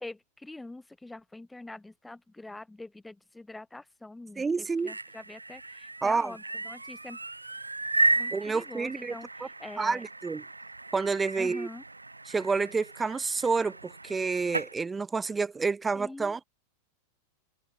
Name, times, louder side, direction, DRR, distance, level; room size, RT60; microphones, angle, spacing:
voice 1, 0.0-7.2 8.2-10.0 11.4-11.8 15.9-16.4, left 2 dB, 5° left, 1.4 m, -44 dB
voice 2, 4.4-4.9 6.0-6.4 8.3-9.5 9.8-10.4 10.9-11.7 12.3-16.4, right 4 dB, 15° right, 0.6 m, -29 dB
sound 1, 4.6-14.7, right 2 dB, 80° right, 0.5 m, -34 dB
figure-of-eight pair, 90°, 0 cm